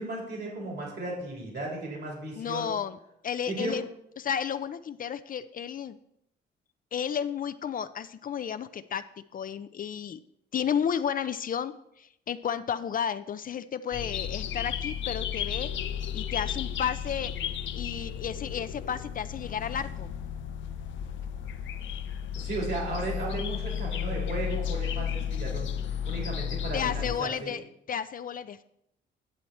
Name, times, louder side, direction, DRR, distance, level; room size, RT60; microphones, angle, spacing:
voice 1, 0.0-2.7 3.5-3.7 22.3-27.5, right 2 dB, 60° right, -2 dB, 3.4 m, -35 dB
voice 2, 2.4-3.0 3.2-3.9 4.2-6.0 6.9-9.1 9.3-10.2 10.5-15.7 16.1-17.3 17.7-20.1 26.7-28.6, left 8 dB, 45° left, 12 dB, 0.5 m, -32 dB
sound 1, 13.9-27.2, left 9 dB, 70° left, 0.8 m, -33 dB
10.0 x 7.6 x 4.2 m, 0.76 s
cardioid pair, 90°, 20 cm